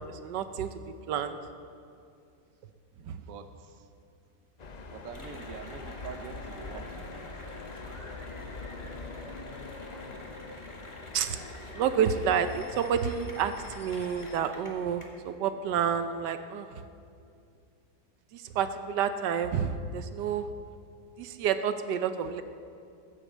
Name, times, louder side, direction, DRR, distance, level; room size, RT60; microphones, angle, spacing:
voice 1, 0.1-1.4 3.0-3.2 11.1-11.4 11.7-16.8 18.3-20.5 21.2-22.4, right 8 dB, 85° right, 10 dB, 1.3 m, -29 dB
voice 2, 3.2-3.9 4.9-7.2 7.5-8.0, right 6 dB, 60° right, 9 dB, 1.2 m, -46 dB
sound 1, 4.6-14.4, left 3 dB, 60° left, 0.4 m, -44 dB
Cheering / Applause, 5.1-15.0, left 1 dB, 20° left, 1.9 m, -47 dB
15.5 x 9.3 x 7.3 m, 2.4 s
omnidirectional pair, 1.8 m